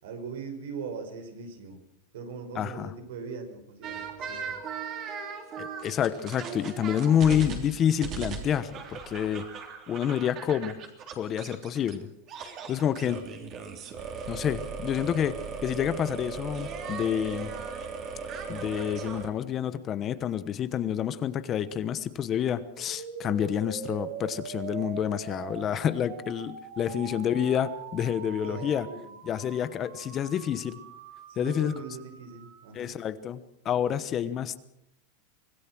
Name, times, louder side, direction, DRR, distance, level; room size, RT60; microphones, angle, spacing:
voice 1, 0.0-1.8 2.1-4.5 28.4-29.1 31.3-33.0, right 5 dB, 80° right, 6 dB, 5.4 m, -40 dB
voice 2, 2.5-2.9 5.6-9.5 9.9-10.8 11.2-12.1 12.4-13.2 14.3-17.5 18.5-28.9 29.2-30.8 31.4-31.7 32.7-34.6, left 9 dB, 25° left, 14 dB, 1.1 m, -28 dB
sound 1, 3.8-12.0 12.3-19.3, right 5 dB, 35° right, 3.4 m, -38 dB
sound 2, 22.8-32.8, right 7 dB, 60° right, 3.3 m, -43 dB
25.0 x 18.0 x 6.2 m, 0.77 s
supercardioid pair, 150°, 0 cm